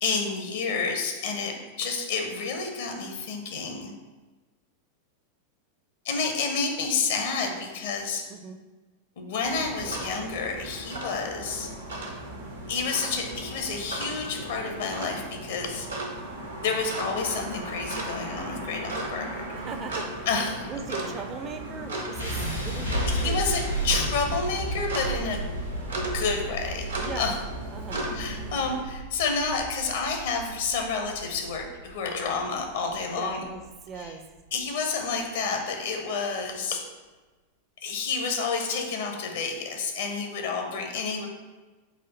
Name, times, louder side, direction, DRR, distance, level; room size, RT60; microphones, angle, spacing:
voice 1, 0.0-3.9 6.0-8.2 9.2-11.7 12.7-15.9 16.6-19.4 20.3-20.6 23.1-25.4 26.1-27.4 28.1-33.4 33.9-34.1 34.5-36.8 37.8-41.3, left 4 dB, 60° left, 3 dB, 0.5 m, -29 dB
sound 1, 9.4-28.8, right 1 dB, 70° right, 0.7 m, -36 dB
voice 2, 19.5-20.2 20.7-23.4 27.0-27.4 27.7-28.1 33.0-34.2, right 5 dB, 25° right, 6 dB, 0.4 m, -39 dB
sound 2, 22.1-34.2, right 1 dB, 90° left, 1.2 m, -33 dB
4.1 x 2.5 x 4.0 m, 1.2 s
figure-of-eight pair, 90°, 0 cm